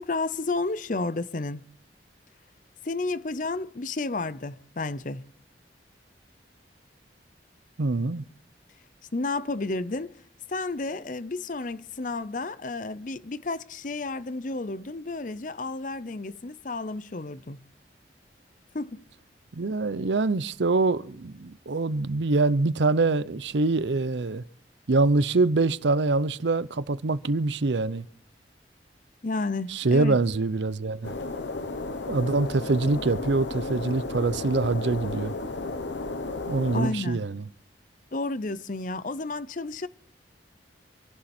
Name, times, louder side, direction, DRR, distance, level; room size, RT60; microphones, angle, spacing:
voice 1, 0.0-1.6 2.8-5.3 9.1-10.1 10.5-17.7 18.7-19.0 29.2-30.2 36.7-37.2 38.1-39.9, left 3 dB, 45° left, 0.7 m, -31 dB
voice 2, 7.8-8.2 19.5-24.4 24.9-28.1 29.7-31.1 32.1-35.3 36.5-37.4, right 3 dB, 85° right, 0.7 m, -24 dB
sound 1, 31.0-36.9, left 2 dB, 90° left, 1.1 m, -33 dB
26.5 x 11.5 x 4.4 m
head